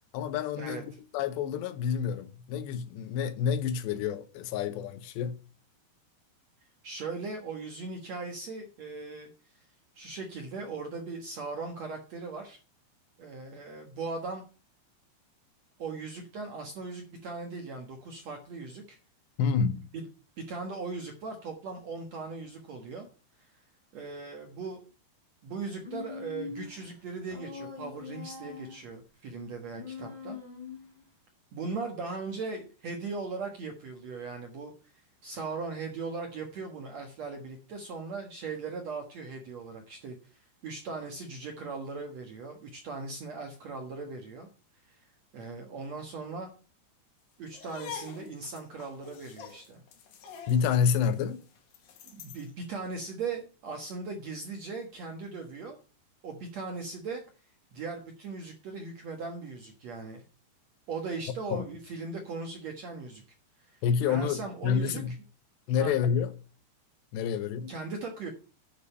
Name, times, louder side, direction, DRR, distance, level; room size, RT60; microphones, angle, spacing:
voice 1, 0.1-5.4 19.4-19.8 50.5-51.4 61.5-61.7 63.8-65.1 65.7-66.3 67.1-67.7, left 7 dB, 85° left, 3.0 m, -28 dB
voice 2, 6.8-9.7 9.9-12.6 13.2-14.4 15.8-19.0 19.9-20.0 20.5-23.1 23.4-23.6 23.9-24.8 25.4-30.4 31.5-34.7 35.2-44.5 44.8-45.0 45.3-46.5 47.4-49.8 52.0-55.8 56.2-57.2 57.7-60.2 60.9-63.2 63.6-65.2 65.8-65.9 67.7-68.3, right 4 dB, 65° right, 1.8 m, -39 dB
Human voice, 25.8-26.8 27.3-28.9 29.7-31.0, left 6 dB, 10° left, 3.0 m, -42 dB
sound 1, 47.5-52.5, left 8 dB, 65° left, 3.1 m, -46 dB
10.0 x 6.7 x 5.5 m
omnidirectional pair, 4.9 m